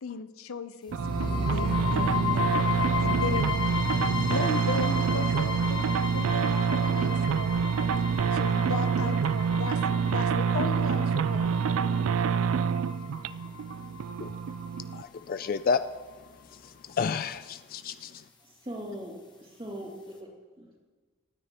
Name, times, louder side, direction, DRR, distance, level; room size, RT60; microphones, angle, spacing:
voice 1, 0.0-2.7 3.0-3.5 3.9-7.5 8.3-12.2, left 4 dB, 90° left, 11 dB, 0.6 m, -37 dB
sound 1, 0.9-14.9, left 5 dB, 20° left, 1.3 m, -34 dB
sound 2, 0.9-15.0, right 6 dB, 75° right, 0.3 m, -27 dB
sound 3, 3.4-8.6, right 2 dB, 45° right, 0.8 m, -50 dB
voice 2, 14.9-15.8 16.6-18.2, left 5 dB, 45° left, 12 dB, 0.3 m, -30 dB
voice 3, 18.4-20.3 20.6-20.8, equal, 25° right, -2 dB, 2.5 m, -40 dB
26.0 x 9.6 x 3.0 m, 1.4 s
head